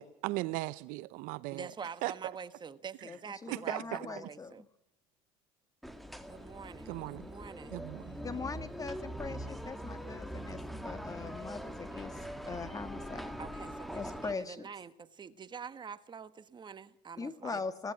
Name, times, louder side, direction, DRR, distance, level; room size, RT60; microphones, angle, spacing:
voice 1, 0.0-1.7 2.0-2.1 3.5-4.1 6.9-7.3 7.7-8.2, right 19 dB, 70° right, 17 dB, 0.7 m, -37 dB
voice 2, 1.5-4.6 6.3-6.9 7.2-7.7 13.4-14.9 15.2-17.6, right 6 dB, 30° right, 12 dB, 1.4 m, -46 dB
voice 3, 3.0-4.7 8.2-13.4 13.9-14.7 17.2-17.9, left 4 dB, 25° left, 11 dB, 1.8 m, -41 dB
sound 1, 5.8-14.3, equal, ahead, 2.0 m, -43 dB
19.0 x 18.0 x 7.6 m, 0.70 s
supercardioid pair, 90°, 14 cm